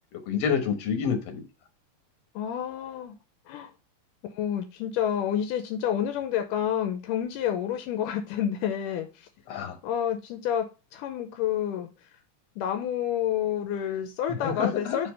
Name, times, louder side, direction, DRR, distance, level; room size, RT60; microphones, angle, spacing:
voice 1, 0.1-1.4 9.5-9.8 14.4-15.0, left 7 dB, 60° left, 6 dB, 2.1 m, -28 dB
voice 2, 2.4-3.2 3.5-3.7 4.4-9.3 9.8-10.7 10.9-11.9 12.6-15.1, left 9 dB, 80° left, 6 dB, 2.2 m, -29 dB
5.1 x 4.3 x 5.2 m, 0.30 s
omnidirectional pair, 3.8 m